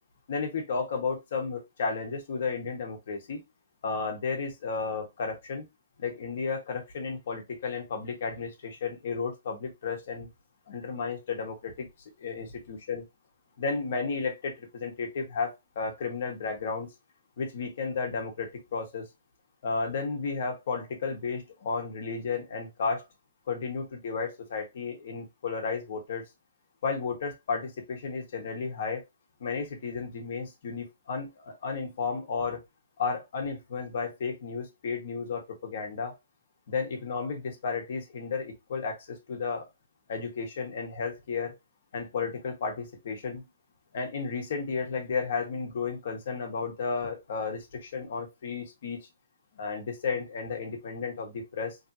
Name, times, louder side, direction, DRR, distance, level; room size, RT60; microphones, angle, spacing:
voice 1, 0.3-3.4 3.8-5.6 6.0-10.3 10.7-11.9 12.2-13.0 13.6-16.9 17.4-19.1 19.6-23.0 23.5-26.2 26.8-29.0 29.4-32.6 33.0-36.1 36.7-39.7 40.1-41.5 41.9-43.5 43.9-49.0 49.5-51.8, left 5 dB, 55° left, 1.3 m, -33 dB
3.3 x 2.9 x 2.6 m
hypercardioid pair, 170°, 0 cm